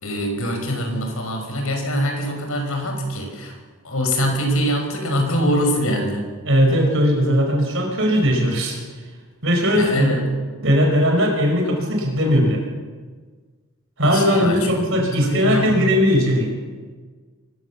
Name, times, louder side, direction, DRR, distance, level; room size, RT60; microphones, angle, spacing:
voice 1, 0.0-3.6 3.8-6.3 9.8-10.3 14.0-15.9, equal, 75° left, 3 dB, 5.6 m, -23 dB
voice 2, 6.4-8.8 9.4-10.2 10.6-12.6 14.0-16.5, equal, 60° right, 1 dB, 5.0 m, -18 dB
24.0 x 16.0 x 7.1 m, 1.4 s
head